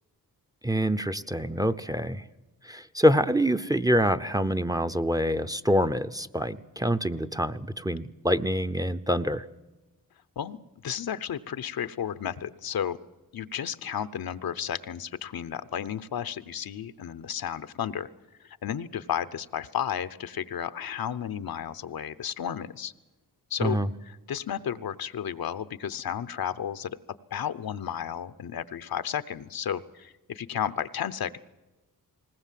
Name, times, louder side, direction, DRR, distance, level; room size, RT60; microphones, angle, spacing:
voice 1, 0.6-2.2 2.7-9.4 23.6-23.9, equal, 10° right, 14 dB, 0.7 m, -26 dB
voice 2, 10.8-13.0 13.3-18.1 18.4-22.9 23.5-27.0 27.3-31.4, left 9 dB, 75° left, 13 dB, 0.8 m, -33 dB
20.0 x 19.5 x 7.5 m, 1.1 s
cardioid pair, 80°, 36 cm